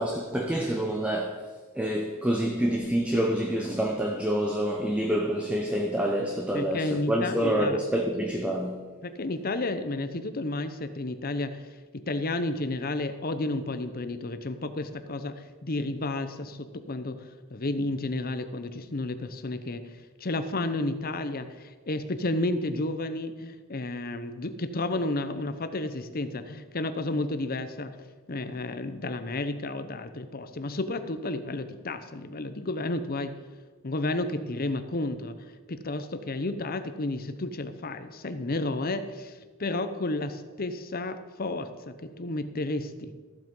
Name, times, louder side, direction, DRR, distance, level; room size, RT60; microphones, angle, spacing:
voice 1, 0.0-1.4 1.8-8.9, equal, 5° right, 0.8 m, -27 dB
voice 2, 6.5-7.8 9.0-19.8 20.2-28.0 28.3-33.4 33.8-43.1, left 2 dB, 45° left, 0.8 m, -32 dB
14.0 x 7.8 x 5.5 m
head